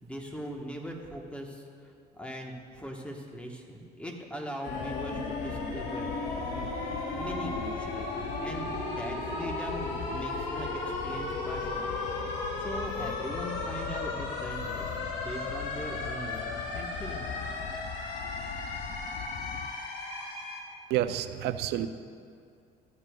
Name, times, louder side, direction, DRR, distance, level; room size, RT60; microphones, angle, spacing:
voice 1, 0.0-6.7 7.2-12.0 12.6-17.3, equal, 5° left, 1 dB, 1.1 m, -41 dB
sound 1, 4.6-20.6, left 3 dB, 90° left, 1.5 m, -35 dB
sound 2, 4.7-19.7, left 8 dB, 65° left, 0.5 m, -42 dB
voice 2, 20.9-21.9, right 12 dB, 80° right, 11 dB, 0.5 m, -29 dB
14.0 x 9.8 x 2.3 m, 2.3 s
cardioid pair, 110°, 17 cm